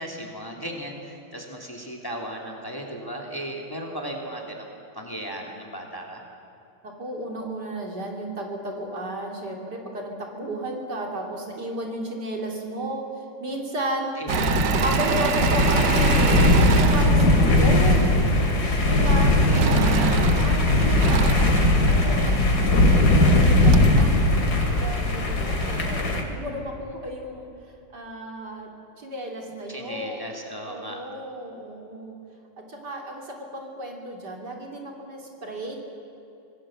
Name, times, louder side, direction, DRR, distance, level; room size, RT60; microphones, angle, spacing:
voice 1, 0.0-6.2 14.2-14.6 19.5-20.3 29.7-31.0, right 1 dB, 10° left, 0 dB, 2.8 m, -36 dB
voice 2, 6.8-13.1 13.4-14.1 14.8-18.2 18.8-20.0 20.4-22.4 22.8-27.5 27.9-28.7 29.0-30.2 30.6-32.2 32.7-35.8, right 1 dB, 65° right, 1 dB, 3.6 m, -33 dB
sound 1, 14.3-26.2, left 1 dB, 60° left, 2.9 m, -19 dB
Engine / Mechanisms, 14.3-18.1 19.5-22.4 23.1-23.2 23.4-24.0, right 10 dB, 85° right, 1.5 m, -28 dB
26.0 x 18.5 x 7.7 m, 2.9 s
omnidirectional pair, 1.9 m